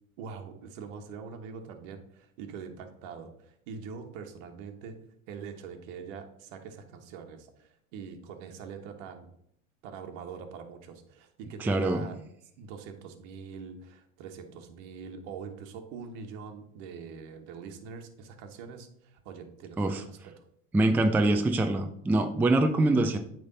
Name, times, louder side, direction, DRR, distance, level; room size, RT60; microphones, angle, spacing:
voice 1, 0.2-4.9 5.3-9.3 9.8-12.2 12.6-20.3, right 6 dB, 65° right, 4 dB, 1.3 m, -43 dB
voice 2, 11.6-12.0 19.8-20.0 20.7-23.2, right 2 dB, 5° right, 6 dB, 0.4 m, -24 dB
8.6 x 3.5 x 5.4 m, 0.71 s
supercardioid pair, 115°, 40 cm